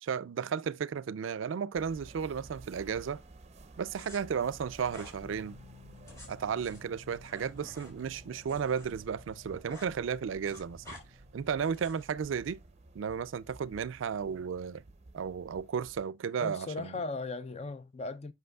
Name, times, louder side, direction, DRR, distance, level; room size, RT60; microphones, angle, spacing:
voice 1, 0.0-3.2 3.8-5.6 6.3-11.0 11.3-12.6 13.0-14.8 15.1-16.9, right 7 dB, 80° right, 0.4 m, -34 dB
sound 1, 1.7-16.0, right 2 dB, 35° right, 0.6 m, -53 dB
sound 2, 3.9-4.2 4.9-5.2 5.9-8.9 9.2-9.9 10.2-11.0 11.6-12.1, left 1 dB, 15° left, 3.7 m, -51 dB
sound 3, 5.2-12.1, left 5 dB, 85° left, 0.9 m, -57 dB
voice 2, 16.4-18.3, left 3 dB, 35° left, 0.5 m, -37 dB
7.8 x 5.8 x 2.2 m
head